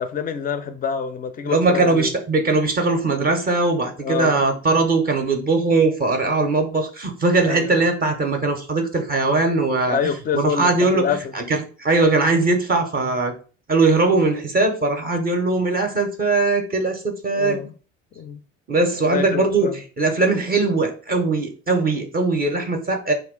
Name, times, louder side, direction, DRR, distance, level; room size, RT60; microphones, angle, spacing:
voice 1, 0.0-2.1 4.0-4.4 4.7-4.8 7.4-7.7 9.9-11.3 17.3-17.7 18.2-18.4 18.9-19.8, left 7 dB, 25° left, 0.4 m, -26 dB
voice 2, 1.4-10.0 10.3-11.0 11.3-13.3 13.7-17.6 18.7-23.1, right 3 dB, 25° right, 0.6 m, -20 dB
2.3 x 2.1 x 3.6 m
hypercardioid pair, 65°, 39 cm